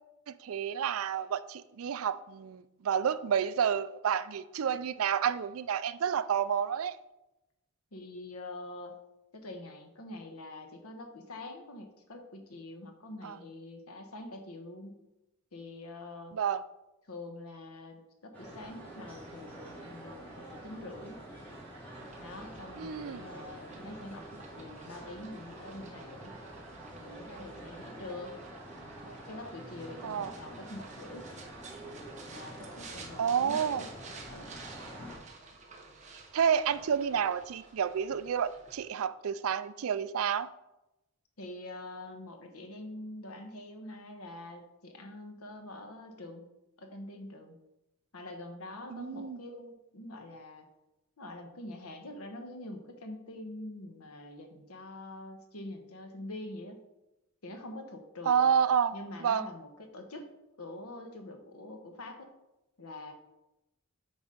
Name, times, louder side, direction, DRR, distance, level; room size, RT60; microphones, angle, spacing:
voice 1, 0.3-7.0 13.2-13.4 16.3-16.6 22.8-23.2 30.0-30.3 33.2-33.8 36.3-40.5 48.9-49.4 58.3-59.0 59.2-59.5, right 7 dB, 75° right, 0.4 m, -30 dB
voice 2, 7.9-8.9 9.3-15.0 15.5-16.3 17.1-21.2 22.2-26.3 26.9-28.4 29.0-31.3 32.3-33.9 34.3-34.5 41.4-46.4 46.8-47.5 48.1-50.6 51.2-56.8 57.4-58.4 58.9-60.3 60.6-62.3 62.8-63.1, left 1 dB, 90° left, 1.2 m, -45 dB
Residential neighborhood in Summer by day - Stereo Ambience, 18.3-35.2, right 1 dB, 5° left, 2.5 m, -47 dB
sound 1, 22.0-38.8, right 4 dB, 35° right, 1.1 m, -52 dB
8.0 x 4.1 x 5.1 m
head